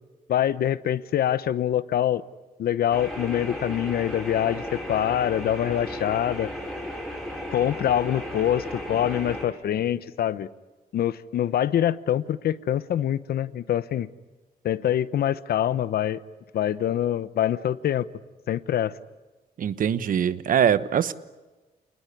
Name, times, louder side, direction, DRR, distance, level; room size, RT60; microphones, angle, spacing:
voice 1, 0.3-2.2 2.6-6.5 7.5-10.5 10.9-14.1 14.6-16.2 16.5-18.0 18.5-18.9, left 11 dB, 75° left, 15 dB, 0.9 m, -25 dB
sound 1, 2.9-9.4, equal, ahead, 6.6 m, -35 dB
voice 2, 19.6-21.1, right 8 dB, 60° right, 14 dB, 1.1 m, -22 dB
28.0 x 20.0 x 9.9 m, 1.2 s
wide cardioid pair, 145°, 16 cm